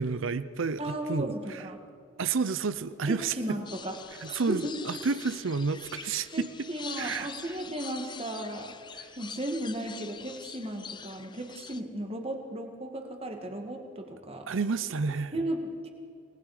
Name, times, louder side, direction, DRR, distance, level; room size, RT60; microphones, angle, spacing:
voice 1, 0.0-1.7 2.2-3.6 4.2-6.7 7.0-7.6 8.9-9.1 14.5-15.3, right 4 dB, 65° right, 14 dB, 0.6 m, -30 dB
voice 2, 0.8-1.8 3.1-4.0 4.5-4.8 6.3-8.7 9.2-14.5 15.3-15.9, right 1 dB, 25° right, 4 dB, 1.9 m, -35 dB
sound 1, 3.6-11.8, left 6 dB, 20° left, 0.5 m, -44 dB
29.0 x 19.5 x 4.9 m, 2.5 s
head